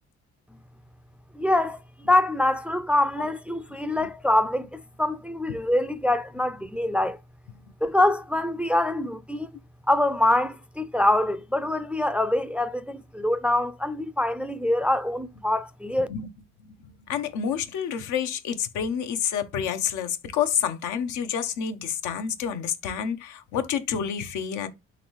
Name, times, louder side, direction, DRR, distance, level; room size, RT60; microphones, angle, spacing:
voice 1, 1.3-1.8 2.1-7.2 7.8-9.5 9.9-16.1, left 1 dB, 5° right, 0.3 m, -24 dB
voice 2, 16.6-24.7, left 8 dB, 85° left, 0.7 m, -29 dB
3.9 x 3.2 x 3.0 m
cardioid pair, 80°, 29 cm